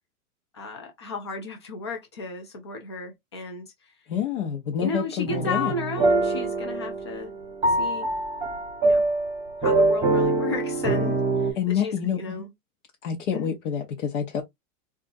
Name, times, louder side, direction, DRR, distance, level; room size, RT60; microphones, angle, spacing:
voice 1, 0.5-3.9 4.8-7.3 7.7-8.1 8.8-9.1 9.6-12.5 13.3-13.5, left 3 dB, 20° left, 0.3 m, -34 dB
voice 2, 4.1-5.7 11.6-12.4 13.0-14.4, left 8 dB, 55° left, 0.9 m, -27 dB
sound 1, 5.3-11.5, right 2 dB, 10° right, 1.1 m, -24 dB
3.6 x 2.4 x 2.6 m
hypercardioid pair, 155°, 44 cm